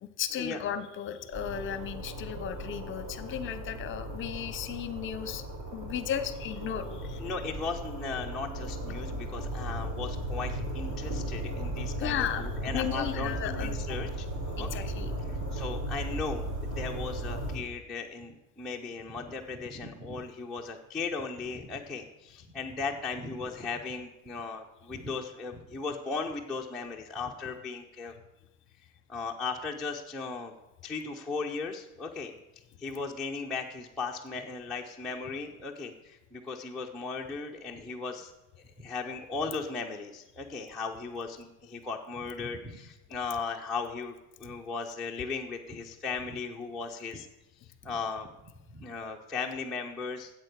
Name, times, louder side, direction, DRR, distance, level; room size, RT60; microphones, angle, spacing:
voice 1, 0.0-5.4 5.7-7.2 12.0-13.8 14.6-15.1, left 9 dB, 30° left, 12 dB, 0.8 m, -35 dB
sound 1, 1.3-17.6, right 1 dB, 45° right, 4.1 m, -36 dB
voice 2, 6.9-14.9 15.2-16.5 16.8-28.1 29.1-30.5 30.8-32.3 32.8-38.3 38.8-47.3 47.8-48.3 48.7-50.3, left 4 dB, ahead, -3 dB, 0.4 m, -37 dB
8.8 x 8.0 x 6.6 m, 0.97 s
supercardioid pair, 140°, 42 cm